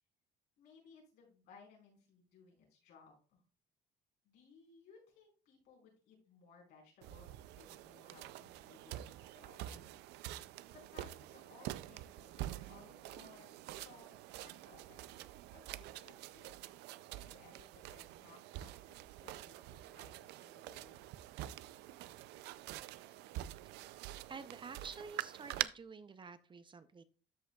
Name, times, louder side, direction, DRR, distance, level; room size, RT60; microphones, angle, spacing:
voice 1, 0.6-3.4 4.2-9.9 10.2-10.4 10.7-16.8 17.1-21.0, left 4 dB, 80° left, -1 dB, 4.6 m, -62 dB
sound 1, 7.0-25.6, right 15 dB, 85° right, 0.4 m, -46 dB
voice 2, 23.9-27.0, right 5 dB, 30° right, 12 dB, 0.6 m, -50 dB
13.0 x 5.4 x 2.3 m, 0.35 s
cardioid pair, 110°, 17 cm